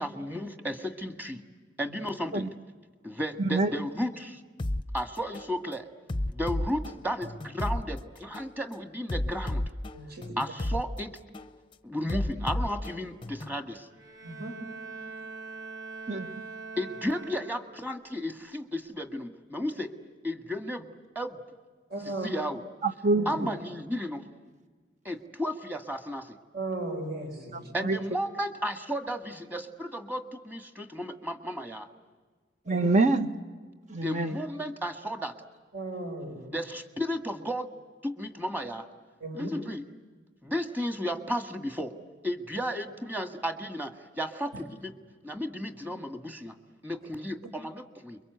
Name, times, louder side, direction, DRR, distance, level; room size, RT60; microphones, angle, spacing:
voice 1, 0.0-1.4 1.8-2.6 3.0-4.4 4.9-5.9 6.3-9.7 10.4-11.2 11.8-13.9 16.8-19.9 20.2-20.9 21.2-21.4 22.2-22.6 23.3-24.2 25.1-26.4 27.7-31.9 34.0-35.3 36.5-37.7 38.0-38.9 39.3-39.8 40.4-42.0 42.2-44.9 45.2-46.6 46.8-48.2, equal, 10° right, 1.8 m, -34 dB
voice 2, 3.4-3.7 16.1-16.4 22.8-23.5 27.5-28.0 32.7-33.3 33.9-34.4, right 3 dB, 40° right, 1.3 m, -26 dB
sound 1, 4.6-4.8 5.3-5.5 6.1-7.8 8.3-8.5 9.1-10.8 11.3-11.5 12.1-13.6, left 1 dB, 30° left, 0.8 m, -32 dB
voice 3, 9.9-10.3 14.2-14.6 21.9-22.3 23.2-23.4 26.5-27.7 32.6-32.9 35.7-36.5 39.2-39.5, right 2 dB, 60° right, 4.6 m, -36 dB
Bowed string instrument, 13.9-18.0, right 4 dB, 80° right, 3.6 m, -43 dB
29.5 x 23.0 x 8.1 m
head